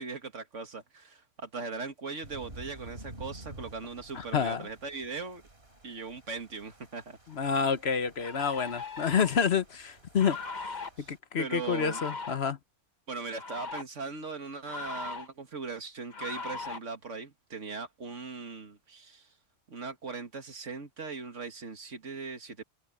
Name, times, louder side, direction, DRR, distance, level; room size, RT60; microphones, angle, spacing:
voice 1, 0.0-5.4 5.8-7.2 11.0-12.0 13.1-19.3 19.7-22.6, right 4 dB, 85° right, 2.3 m, -39 dB
sound 1, 2.2-11.2, right 1 dB, 55° right, 4.3 m, -51 dB
voice 2, 4.1-4.7 7.3-10.4 10.6-10.8 11.1-12.6, left 6 dB, 60° left, 1.3 m, -28 dB
sound 2, 7.3-7.4 8.2-9.4 10.2-10.9 11.7-12.4 13.3-13.8 14.7-15.3 16.1-16.8, left 4 dB, 40° left, 1.5 m, -39 dB
omnidirectional pair, 1.2 m